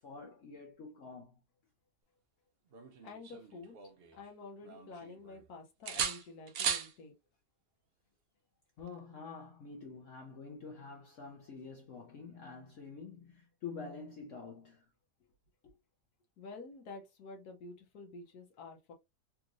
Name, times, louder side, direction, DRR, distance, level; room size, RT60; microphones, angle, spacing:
voice 1, 0.0-1.4 8.8-14.8 15.6-15.7, left 4 dB, 60° left, 0.9 m, -47 dB
sound 1, 2.7-4.3 4.6-5.4 5.9-6.9 8.8-9.0, right 7 dB, 70° right, 0.5 m, -38 dB
voice 2, 3.0-7.1 16.4-18.9, left 3 dB, 75° left, 1.3 m, -49 dB
3.5 x 2.5 x 2.9 m
omnidirectional pair, 1.7 m